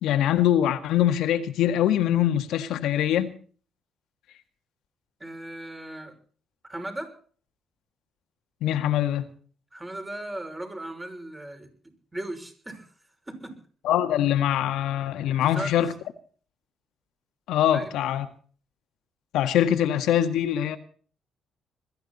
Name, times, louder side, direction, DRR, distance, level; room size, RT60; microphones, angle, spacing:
voice 1, 0.0-3.3 8.6-9.2 13.8-15.9 17.5-18.2 19.3-20.8, left 11 dB, 85° left, 1.8 m, -23 dB
voice 2, 5.2-6.2 6.6-7.2 9.7-12.9 13.3-13.6 15.4-15.8 17.7-17.9, right 1 dB, 15° right, 5.9 m, -37 dB
21.5 x 14.0 x 4.2 m
cardioid pair, 90°, 0 cm